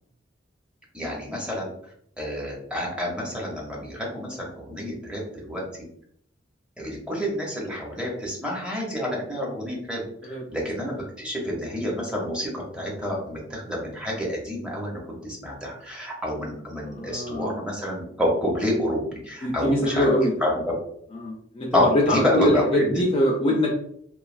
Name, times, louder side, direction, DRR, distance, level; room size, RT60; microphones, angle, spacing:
voice 1, 0.9-1.7 2.2-5.7 6.8-20.1 20.4-20.6 21.7-23.0, equal, 5° right, -3 dB, 0.7 m, -28 dB
voice 2, 16.9-17.5 19.4-20.3 21.1-23.7, left 1 dB, 30° left, 0 dB, 0.4 m, -23 dB
3.1 x 2.3 x 2.4 m, 0.68 s
head